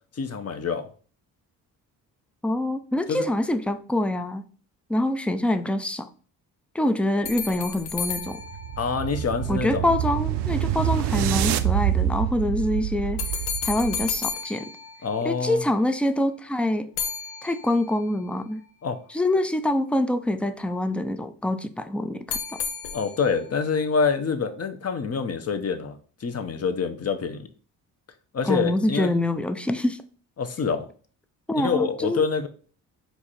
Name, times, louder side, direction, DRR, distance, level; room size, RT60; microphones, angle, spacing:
voice 1, 0.1-0.9 3.1-3.3 8.8-9.9 15.0-15.6 18.8-19.0 22.9-27.5 28.3-29.1 30.4-30.9 31.5-32.5, left 5 dB, 35° left, 0.8 m, -26 dB
voice 2, 2.4-4.4 4.9-6.1 6.7-8.4 9.5-13.2 13.6-14.7 15.2-16.9 17.4-18.6 19.1-22.6 28.4-30.0 31.5-32.2, left 1 dB, 5° left, 0.4 m, -25 dB
sound 1, 7.2-9.6 13.2-15.7 17.0-18.2 22.3-23.5, left 6 dB, 90° left, 0.7 m, -33 dB
sound 2, 8.1-14.3, right 11 dB, 70° right, 0.5 m, -27 dB
4.6 x 2.5 x 4.3 m
supercardioid pair, 60°, 42 cm